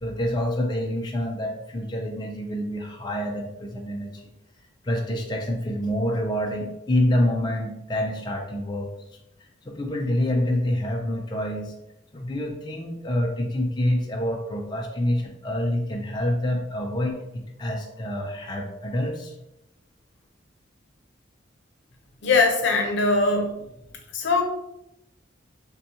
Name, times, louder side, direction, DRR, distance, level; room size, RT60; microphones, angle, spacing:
voice 1, 0.0-4.3 4.8-8.9 9.7-11.7 12.1-19.3, left 1 dB, 25° left, 1 dB, 0.4 m, -27 dB
voice 2, 22.2-23.5 24.1-24.4, left 3 dB, 65° left, 3 dB, 0.7 m, -21 dB
5.4 x 2.2 x 2.7 m, 0.86 s
head